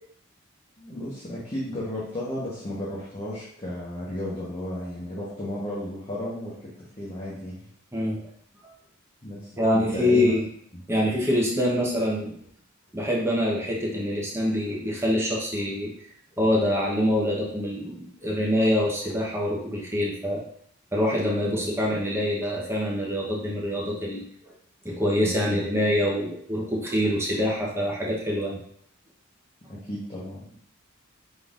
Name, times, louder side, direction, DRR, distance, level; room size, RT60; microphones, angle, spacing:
voice 1, 0.8-6.7 7.0-7.7 9.2-10.3 21.5-21.6 25.2-25.6 29.7-30.5, left 1 dB, 30° left, -7 dB, 1.0 m, -34 dB
voice 2, 7.9-8.3 9.6-10.4 10.9-12.3 12.9-15.9 16.4-20.4 20.9-24.5 24.8-28.6, left 1 dB, 10° right, -3 dB, 0.9 m, -25 dB
5.3 x 3.9 x 2.5 m, 0.66 s
head